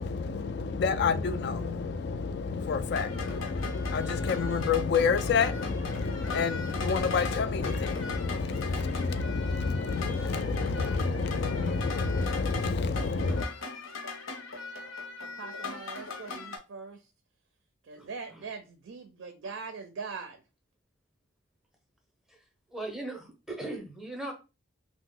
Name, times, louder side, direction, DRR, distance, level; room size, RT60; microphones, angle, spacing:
voice 1, 0.0-13.5, left 4 dB, 55° left, 0.3 m, -29 dB
sound 1, 2.9-16.6, left 3 dB, 85° left, 0.8 m, -40 dB
voice 2, 15.2-17.0 17.9-20.4, right 4 dB, 70° right, 0.4 m, -42 dB
voice 3, 17.9-18.5 22.3-22.4 22.7-24.3, right 2 dB, ahead, 0.6 m, -39 dB
2.8 x 2.0 x 3.7 m
head